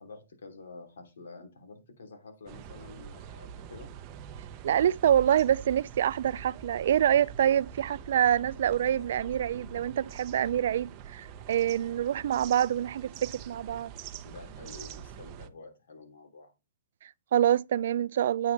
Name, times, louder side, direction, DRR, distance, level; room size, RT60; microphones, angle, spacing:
voice 1, 0.0-3.9 14.2-16.5, left 3 dB, 80° left, 3.1 m, -48 dB
sound 1, 2.5-15.5, right 8 dB, 30° right, 0.8 m, -45 dB
voice 2, 4.6-13.9 17.0-18.5, right 10 dB, 60° right, 0.3 m, -26 dB
8.4 x 5.0 x 4.0 m
hypercardioid pair, 155°, 0 cm